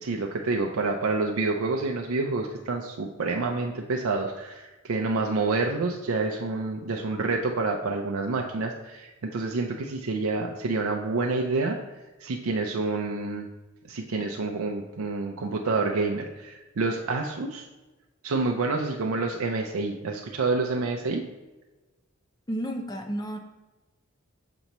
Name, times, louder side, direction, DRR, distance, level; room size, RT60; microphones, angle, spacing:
voice 1, 0.0-11.8 12.2-13.5 13.8-17.7 18.2-21.2, right 3 dB, 85° right, 2 dB, 0.5 m, -28 dB
voice 2, 22.5-23.4, equal, 20° left, 5 dB, 0.5 m, -31 dB
6.8 x 3.0 x 5.3 m, 1.1 s
head